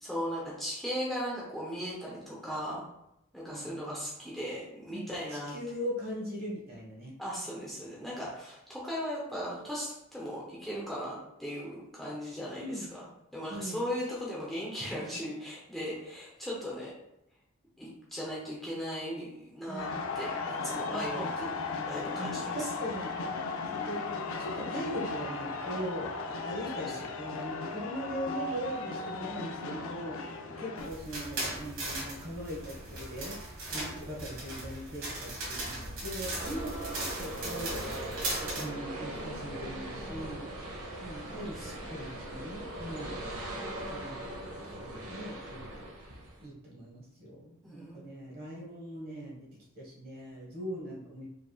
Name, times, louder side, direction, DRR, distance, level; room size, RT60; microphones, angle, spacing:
voice 1, 0.0-2.9 3.3-5.5 7.2-13.0 13.3-16.9 17.8-19.9 20.1-21.3 21.9-22.7 26.9-27.0 30.4-30.6 33.7-33.9 41.3-42.0 47.6-48.1, equal, ahead, -6 dB, 0.7 m, -38 dB
voice 2, 3.4-3.9 4.9-7.1 8.0-8.1 12.6-12.9 13.5-13.8 19.7-19.9 20.9-21.5 22.2-23.1 23.7-37.8 38.4-40.4 41.0-43.1 43.9-44.2 44.4-45.9 46.4-49.5 49.7-51.3, equal, 45° right, -4 dB, 1.4 m, -40 dB
sound 1, 19.8-30.9, left 4 dB, 75° left, 0.5 m, -36 dB
sound 2, 30.8-38.6, right 2 dB, 60° right, 1.5 m, -38 dB
sound 3, 36.4-46.4, right 1 dB, 85° right, 1.0 m, -40 dB
4.8 x 3.4 x 2.3 m, 0.83 s
head